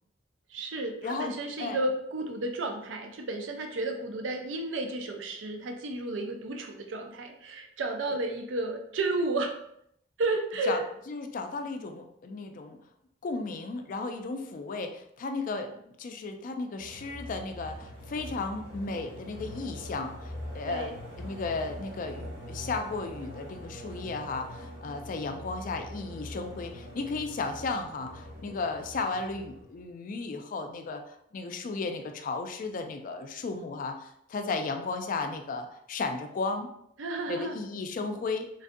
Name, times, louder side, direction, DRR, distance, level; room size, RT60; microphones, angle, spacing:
voice 1, 0.5-9.5 10.2-10.8 20.7-20.9 37.0-37.6, right 2 dB, 85° right, 4 dB, 0.5 m, -32 dB
voice 2, 1.0-1.8 10.7-10.8 11.1-12.8 13.2-20.9 21.2-36.7 37.3-38.5, left 3 dB, 45° left, 6 dB, 0.3 m, -34 dB
sound 1, 16.8-29.9, equal, 60° right, 1.2 m, -43 dB
3.2 x 2.5 x 2.6 m, 0.73 s
head